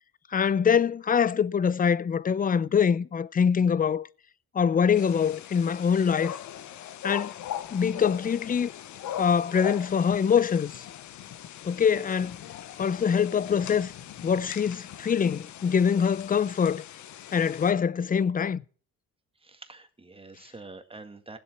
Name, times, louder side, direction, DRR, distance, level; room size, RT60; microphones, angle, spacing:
voice 1, 0.3-4.1 4.5-6.4 7.0-7.3 7.7-8.7 9.2-10.8 11.6-12.4 12.8-13.9 14.2-16.8 17.3-18.6, left 7 dB, 30° left, 0.5 m, -24 dB
sound 1, 4.9-17.7, left 10 dB, 70° left, 0.9 m, -40 dB
voice 2, 19.4-21.4, right 3 dB, 20° right, 1.7 m, -46 dB
17.5 x 7.9 x 5.8 m
cardioid pair, 90°, 30 cm